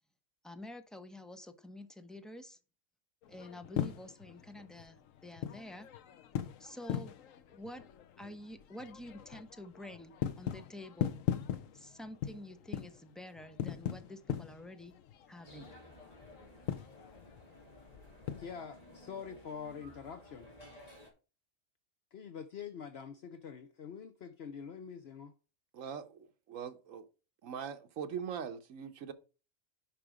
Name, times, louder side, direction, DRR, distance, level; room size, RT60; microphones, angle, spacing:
voice 1, 0.4-2.6 3.3-5.9 6.6-7.2 7.5-7.8 8.2-11.1 11.7-14.9 15.3-15.7, left 1 dB, ahead, 0.8 m, -48 dB
sound 1, 3.2-18.5, left 10 dB, 80° left, 1.1 m, -41 dB
sound 2, 15.4-21.1, left 1 dB, 30° left, 3.2 m, -55 dB
voice 2, 18.4-20.5 22.1-25.3, left 7 dB, 60° left, 0.9 m, -45 dB
voice 3, 25.7-27.1 27.4-29.1, right 7 dB, 80° right, 1.3 m, -42 dB
10.5 x 5.1 x 4.9 m
omnidirectional pair, 1.4 m